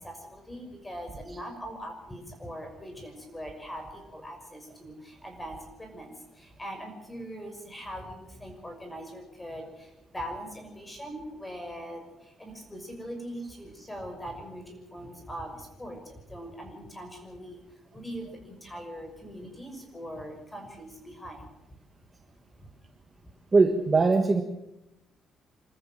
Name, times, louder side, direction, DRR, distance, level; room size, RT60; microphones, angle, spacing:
voice 1, 0.0-17.6 17.9-21.5 22.5-22.7, equal, 10° left, 4 dB, 6.1 m, -41 dB
voice 2, 23.5-24.4, right 3 dB, 25° right, 5 dB, 1.5 m, -21 dB
26.5 x 14.0 x 7.5 m, 0.91 s
cardioid pair, 130°, 0 cm